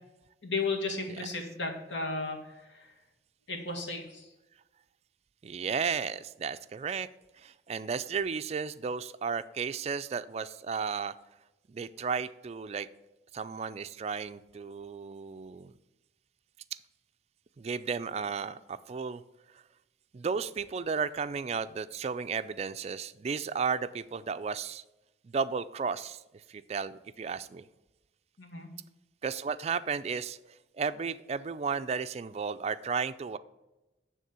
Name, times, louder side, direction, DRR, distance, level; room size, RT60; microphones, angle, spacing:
voice 1, 0.4-2.9 3.5-4.3 28.4-28.7, left 3 dB, 90° left, 2 dB, 1.8 m, -34 dB
voice 2, 5.4-7.1 7.4-11.1 11.7-12.9 13.3-15.7 17.6-19.2 20.1-24.8 25.2-26.2 26.5-27.6 29.2-30.4 30.8-33.4, right 5 dB, 35° right, 12 dB, 0.3 m, -34 dB
9.2 x 3.7 x 6.9 m, 1.0 s
head